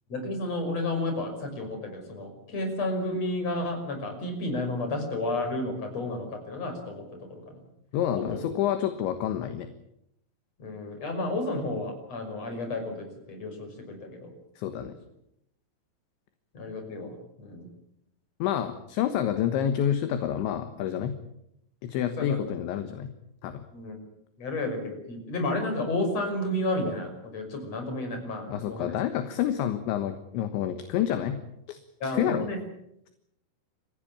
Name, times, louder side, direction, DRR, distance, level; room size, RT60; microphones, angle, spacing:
voice 1, 0.1-7.6 8.2-8.5 10.6-14.3 14.8-14.9 16.5-17.7 22.0-22.4 23.7-24.0 24.4-29.0 32.0-32.6, left 2 dB, 30° left, 5 dB, 6.6 m, -32 dB
voice 2, 7.9-9.7 14.6-15.0 18.4-21.1 21.8-23.1 23.4-23.6 28.5-31.4 31.7-31.8 32.1-32.5, left 10 dB, 70° left, 9 dB, 3.4 m, -28 dB
29.5 x 15.5 x 8.8 m, 0.80 s
omnidirectional pair, 5.9 m